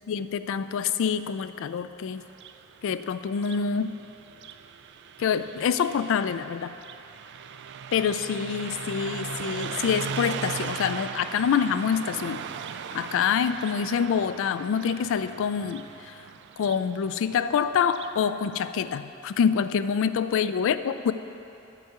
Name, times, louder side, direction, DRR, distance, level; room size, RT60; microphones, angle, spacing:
voice 1, 0.1-2.2 2.8-3.9 5.2-6.7 7.9-12.4 12.9-16.2 16.6-21.1, left 7 dB, 65° left, 13 dB, 0.3 m, -26 dB
Car passing by, 2.2-18.2, right 6 dB, 55° right, 0.3 m, -38 dB
9.2 x 4.7 x 6.7 m, 2.9 s
head